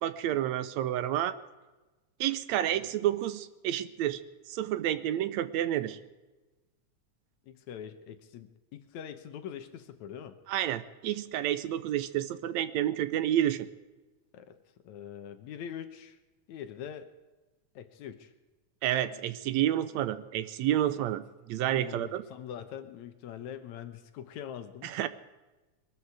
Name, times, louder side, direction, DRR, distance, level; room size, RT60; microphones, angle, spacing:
voice 1, 0.0-1.4 2.2-4.2 4.5-6.0 10.5-13.7 18.8-21.2 21.5-22.2 24.8-25.1, right 12 dB, 75° right, 14 dB, 1.9 m, -29 dB
voice 2, 7.5-10.4 14.3-14.6 14.8-16.2 16.5-17.1 17.8-18.3 20.9-21.1 21.7-24.9, left 9 dB, 75° left, 9 dB, 2.3 m, -43 dB
22.0 x 12.5 x 4.8 m, 1.1 s
omnidirectional pair, 3.4 m